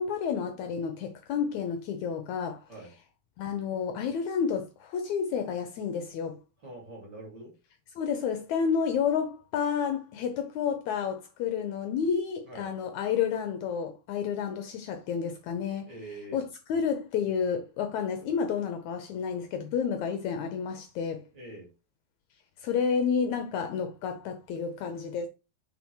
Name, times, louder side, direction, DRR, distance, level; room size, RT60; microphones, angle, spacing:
voice 1, 0.0-2.6 3.4-6.4 8.0-15.9 16.3-21.3 22.6-25.3, left 6 dB, 75° left, 1.7 m, -30 dB
voice 2, 6.6-7.5 12.4-12.7 15.8-16.4 21.3-21.7, right 2 dB, 35° right, 2.8 m, -44 dB
5.8 x 3.9 x 4.4 m
omnidirectional pair, 4.0 m